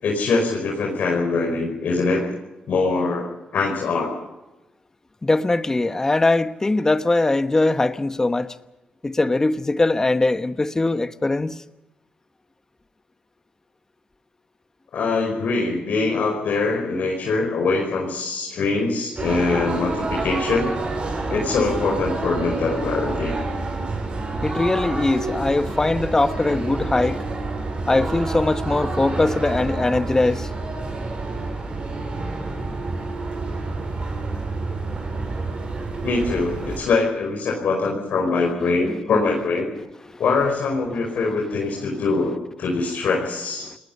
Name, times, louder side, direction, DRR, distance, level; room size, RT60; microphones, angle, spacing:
voice 1, 0.0-2.2 2.7-3.3 3.5-4.1 14.9-20.7 21.3-23.3 36.0-39.7 40.2-43.7, left 3 dB, 70° left, 5.0 m, -23 dB
voice 2, 5.2-8.5 9.0-11.6 24.4-27.2 27.9-30.5 40.1-40.2, left 2 dB, 20° left, 1.1 m, -21 dB
sound 1, 19.2-36.8, right 3 dB, 40° right, 6.5 m, -28 dB
29.0 x 20.0 x 5.6 m
cardioid pair, 90°, 3 cm